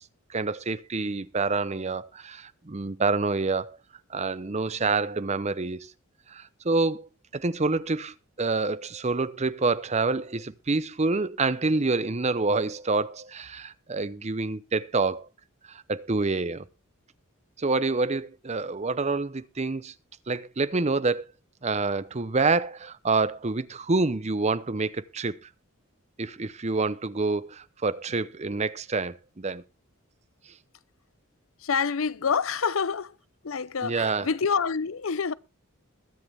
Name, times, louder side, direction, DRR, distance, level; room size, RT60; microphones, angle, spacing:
voice 1, 0.3-3.8 4.1-5.9 6.3-15.3 15.7-16.7 17.6-19.9 20.3-21.2 21.6-25.4 26.2-29.6 33.8-34.3, right 3 dB, 30° right, 0.7 m, -27 dB
voice 2, 31.6-33.1 33.4-35.3, left 6 dB, 70° left, 0.6 m, -27 dB
21.5 x 7.8 x 3.5 m
head